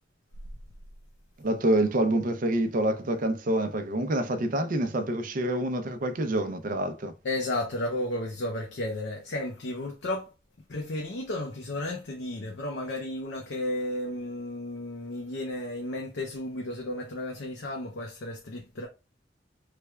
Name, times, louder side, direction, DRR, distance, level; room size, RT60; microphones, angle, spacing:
voice 1, 1.4-7.1, right 1 dB, 50° right, 0.5 m, -27 dB
voice 2, 7.2-10.3 10.7-18.9, left 1 dB, 80° left, 0.6 m, -33 dB
3.3 x 2.2 x 3.3 m
head